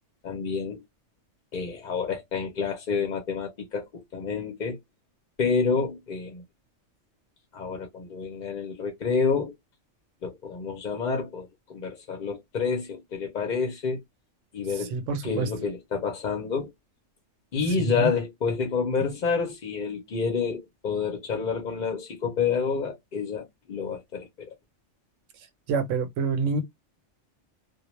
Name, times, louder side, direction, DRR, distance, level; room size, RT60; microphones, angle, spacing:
voice 1, 0.2-0.8 1.5-4.8 5.4-6.4 7.5-9.5 10.2-14.0 14.5-15.0 15.2-16.7 17.5-24.5, left 5 dB, 50° left, 0.6 m, -29 dB
voice 2, 14.8-15.5 17.8-18.1 25.7-26.6, right 4 dB, 85° right, 1.0 m, -27 dB
2.2 x 2.0 x 2.9 m
omnidirectional pair, 1.3 m